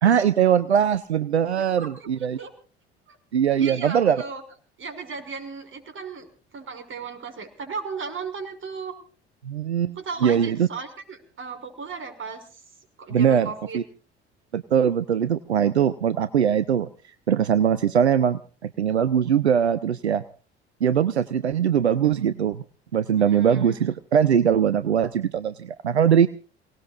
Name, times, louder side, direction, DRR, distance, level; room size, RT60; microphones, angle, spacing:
voice 1, 0.0-2.4 3.3-4.2 9.4-9.9 10.2-10.7 13.1-13.5 13.7-13.8 14.5-16.9 17.3-20.2 20.8-22.6 22.9-26.3, right 8 dB, 85° right, 13 dB, 0.7 m, -21 dB
voice 2, 1.8-2.1 2.4-2.5 3.1-3.2 3.5-4.4 4.8-6.3 6.5-9.0 10.0-12.6 13.0-13.8 23.1-23.8, right 5 dB, 40° right, 6 dB, 6.0 m, -36 dB
28.5 x 19.0 x 2.5 m, 0.37 s
figure-of-eight pair, 55°, 32 cm